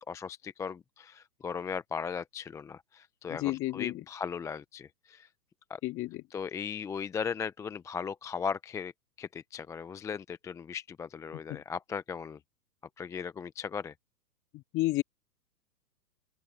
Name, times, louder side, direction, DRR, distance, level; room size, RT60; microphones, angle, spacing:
voice 1, 0.1-5.3 5.7-5.8 6.3-8.9 9.2-12.4 13.0-13.9, left 6 dB, 5° left, 0.6 m, -37 dB
voice 2, 3.3-4.0 5.8-6.2 11.5-11.6 14.5-15.0, left 18 dB, 25° left, 2.1 m, -31 dB
open air
figure-of-eight pair, 115°, 50 cm